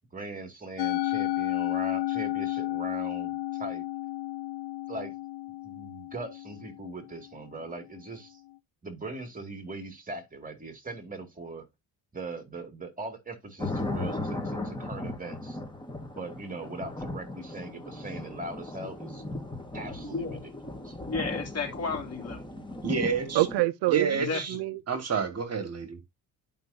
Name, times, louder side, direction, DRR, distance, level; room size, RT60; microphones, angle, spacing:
voice 1, 0.1-3.8 4.9-5.1 5.6-8.4 8.8-11.6 12.1-15.6 16.1-19.3 19.7-20.4 20.8-21.0, right 2 dB, 20° right, 2.4 m, -40 dB
Musical instrument, 0.8-7.2, left 16 dB, 75° left, 0.5 m, -32 dB
sound 1, 13.6-23.6, left 2 dB, 10° left, 1.6 m, -37 dB
voice 2, 20.0-20.4 21.1-22.4 24.1-24.6, left 4 dB, 40° left, 3.1 m, -33 dB
voice 3, 22.8-23.5 23.9-24.5 24.9-26.0, right 5 dB, 40° right, 1.9 m, -29 dB
voice 4, 23.3-24.8, right 17 dB, 85° right, 0.6 m, -26 dB
11.0 x 5.4 x 2.7 m
cardioid pair, 105°, 39 cm